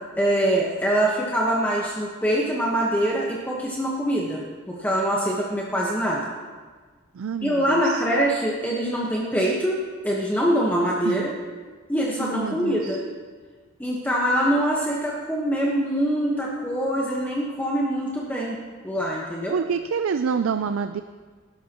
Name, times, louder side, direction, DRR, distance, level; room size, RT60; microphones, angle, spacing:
voice 1, 0.2-6.2 7.4-11.3 11.9-13.0 13.8-18.6 18.8-19.6, right 1 dB, 10° left, -4 dB, 1.2 m, -24 dB
voice 2, 7.1-8.0 11.0-11.3 12.2-13.0 19.5-21.0, right 6 dB, 90° right, 10 dB, 0.4 m, -27 dB
19.0 x 11.5 x 3.0 m, 1.5 s
head